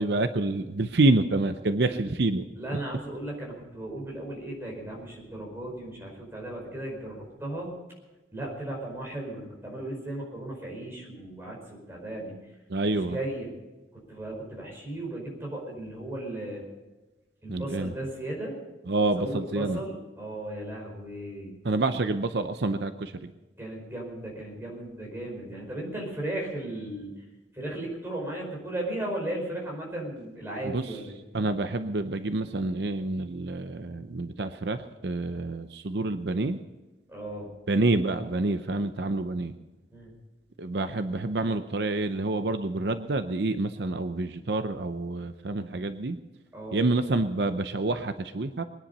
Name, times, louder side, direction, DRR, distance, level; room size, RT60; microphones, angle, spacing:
voice 1, 0.0-2.4 12.7-13.2 17.5-17.9 18.9-19.8 21.6-23.3 30.6-30.8 31.3-36.6 37.7-39.5 40.6-46.2 46.7-48.6, right 2 dB, 70° right, 9 dB, 0.7 m, -27 dB
voice 2, 2.5-7.7 8.3-12.4 12.9-13.5 13.9-16.6 17.4-18.5 19.0-21.5 23.6-27.2 27.5-31.2 37.1-37.5 39.9-40.1 46.5-46.8, right 1 dB, 15° right, -2 dB, 4.9 m, -36 dB
22.5 x 10.0 x 5.5 m, 1.1 s
head